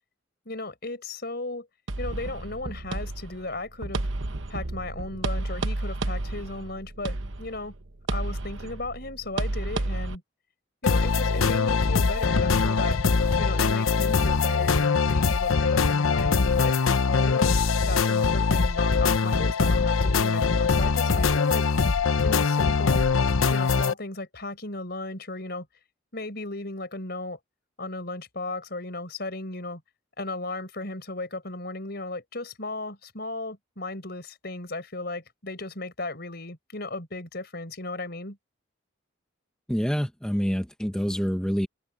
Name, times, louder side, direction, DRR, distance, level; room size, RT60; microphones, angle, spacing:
voice 1, 0.4-1.7 2.0-4.1 4.5-7.7 8.1-10.2 10.8-13.0 13.4-17.5 17.8-21.7 22.2-23.1 23.5-25.7 26.1-27.4 27.8-29.8 30.2-38.4, left 2 dB, 50° left, 4.6 m, -35 dB
sound 1, 1.9-10.1, right 2 dB, 70° right, 1.1 m, -32 dB
sound 2, 10.8-23.9, left 4 dB, 90° left, 0.8 m, -22 dB
voice 2, 39.7-41.7, equal, 5° left, 1.2 m, -26 dB
head